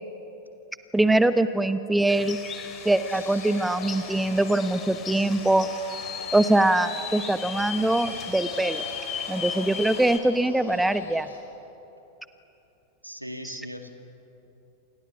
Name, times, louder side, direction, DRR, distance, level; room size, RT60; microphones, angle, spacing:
voice 1, 0.9-2.4 2.8-5.7 6.3-8.8 9.3-11.3 13.4-13.6, right 1 dB, 5° right, 12 dB, 1.1 m, -23 dB
sound 1, 2.1-10.2, left 7 dB, 25° left, 3.1 m, -37 dB
sound 2, 2.6-11.4, left 3 dB, 70° left, 5.5 m, -43 dB
voice 2, 13.0-13.9, equal, 90° right, 6 dB, 2.2 m, -38 dB
29.0 x 28.0 x 7.2 m, 2.9 s
figure-of-eight pair, 90°, 0 cm